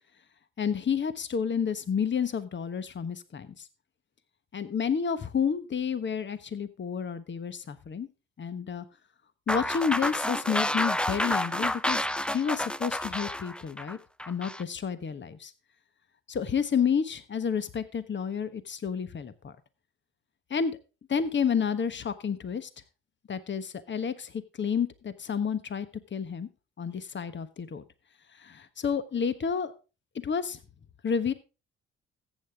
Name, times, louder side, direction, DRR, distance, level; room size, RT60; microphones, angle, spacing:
voice 1, 0.6-3.7 4.5-8.1 8.4-8.8 9.5-12.1 12.3-14.0 14.3-15.5 16.3-19.5 20.5-20.8 21.1-22.7 23.3-25.9 26.1-26.5 26.8-27.8 28.4-29.7 30.2-30.6 31.0-31.3, left 7 dB, 40° left, 12 dB, 1.3 m, -30 dB
sound 1, 9.5-14.6, left 1 dB, 5° left, 0.5 m, -29 dB
14.0 x 8.1 x 3.6 m, 0.31 s
hypercardioid pair, 55°, 30 cm